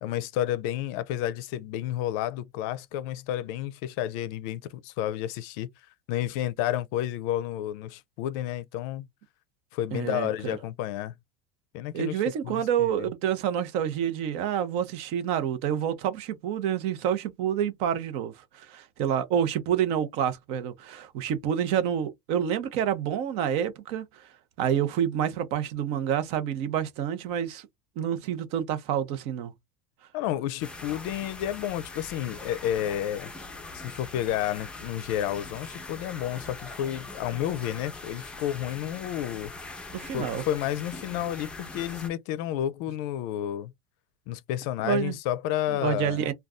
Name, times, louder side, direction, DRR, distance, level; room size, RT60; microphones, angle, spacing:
voice 1, 0.0-5.7 6.1-9.1 9.7-11.1 11.7-12.1 12.4-13.1 30.1-33.3 33.7-39.5 40.1-43.7 44.3-46.3, left 12 dB, 60° left, 0.5 m, -31 dB
voice 2, 9.9-10.6 11.9-24.3 24.6-27.7 28.0-29.5 39.9-40.4 44.8-45.2 45.7-46.3, right 9 dB, 55° right, 0.7 m, -28 dB
sound 1, 30.6-42.1, left 3 dB, 10° left, 0.5 m, -42 dB
2.5 x 2.3 x 3.5 m
supercardioid pair, 145°, 12 cm